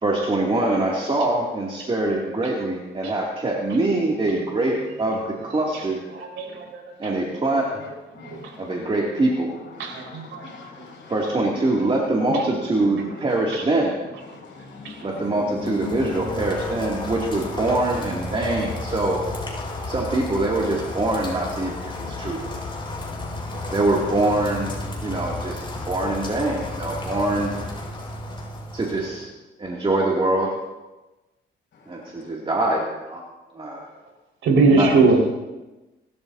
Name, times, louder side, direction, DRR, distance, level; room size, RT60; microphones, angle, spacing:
voice 1, 0.0-6.0 7.0-7.8 8.6-9.5 11.1-13.9 15.0-19.2 19.9-22.4 23.7-24.7 25.0-27.5 28.7-29.3 29.6-30.5 31.9-33.2 33.5-33.9 34.7-35.2, right 2 dB, 30° right, 2.9 m, -24 dB
voice 2, 6.1-7.1 8.3-8.4 9.8-10.5 11.4-11.5 14.8-14.9 34.4-35.2, right 3 dB, 85° right, 5.3 m, -20 dB
voice 3, 8.1-8.8 9.8-11.1 14.3-16.3 23.3-23.8, left 4 dB, 65° left, 6.3 m, -38 dB
Rain, 15.4-29.2, left 2 dB, 25° left, 5.7 m, -33 dB
28.0 x 13.0 x 2.9 m
cardioid pair, 90°, 20 cm